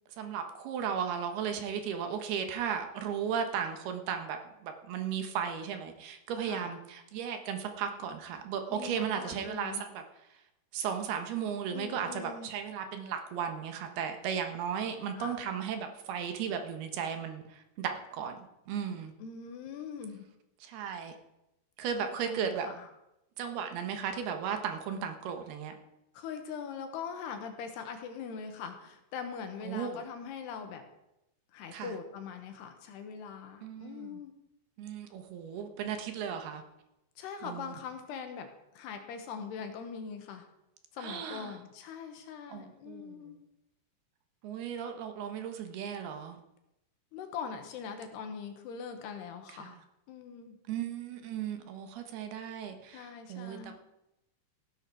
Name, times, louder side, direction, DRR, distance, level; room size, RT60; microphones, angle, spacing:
voice 1, 0.2-10.0 10.7-19.1 20.6-21.1 21.8-22.7 23.4-25.8 29.6-30.0 31.7-31.9 33.6-34.2 34.8-36.6 37.4-37.8 41.0-41.6 42.5-43.4 44.4-46.4 49.6-49.8 50.7-53.7, right 7 dB, 75° right, 6 dB, 3.2 m, -36 dB
voice 2, 6.4-6.8 8.7-9.8 11.7-12.5 15.2-15.4 19.2-20.3 22.0-22.9 26.1-30.8 31.5-34.3 37.2-38.5 38.7-40.5 40.9-43.4 47.1-49.8 50.1-50.6 52.9-53.7, left 6 dB, 80° left, 6 dB, 3.4 m, -42 dB
16.0 x 11.5 x 4.8 m, 0.89 s
omnidirectional pair, 4.8 m